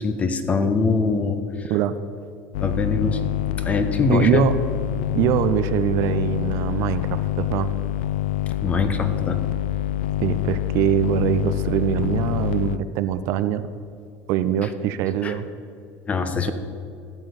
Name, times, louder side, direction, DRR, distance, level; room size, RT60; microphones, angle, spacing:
voice 1, 0.0-1.4 2.6-3.3 3.6-4.5 8.6-9.4 15.2-15.3 16.1-16.5, left 4 dB, 25° left, 9 dB, 1.0 m, -22 dB
sound 1, 2.5-12.8, left 13 dB, 85° left, 0.4 m, -26 dB
voice 2, 4.1-4.6 5.1-7.7 10.2-13.7 14.3-15.5, right 10 dB, 60° right, 12 dB, 0.6 m, -23 dB
14.5 x 6.2 x 7.0 m, 2.4 s
supercardioid pair, 115°, 6 cm